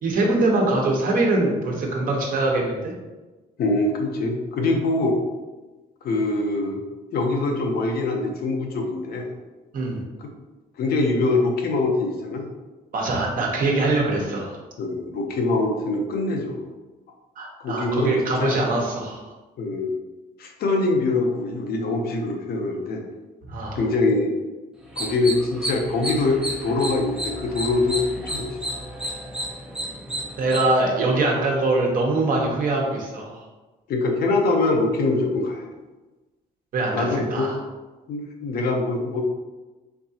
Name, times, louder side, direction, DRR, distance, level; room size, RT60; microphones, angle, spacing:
voice 1, 0.0-2.9 9.7-10.0 12.9-14.6 17.4-19.2 23.5-23.8 30.4-33.3 36.7-37.6, right 2 dB, 60° right, -1 dB, 1.1 m, -23 dB
voice 2, 3.6-5.2 6.0-6.8 7.1-9.3 10.2-10.3 10.8-12.5 14.8-16.6 17.6-18.6 19.6-19.9 20.4-23.0 23.7-24.3 25.0-28.8 33.9-35.7 36.9-37.5 38.1-39.2, left 2 dB, 70° left, 2 dB, 0.8 m, -24 dB
sound 1, 24.8-30.7, equal, 5° right, 0.6 m, -32 dB
4.5 x 3.7 x 2.8 m, 1.2 s
cardioid pair, 125°, 16 cm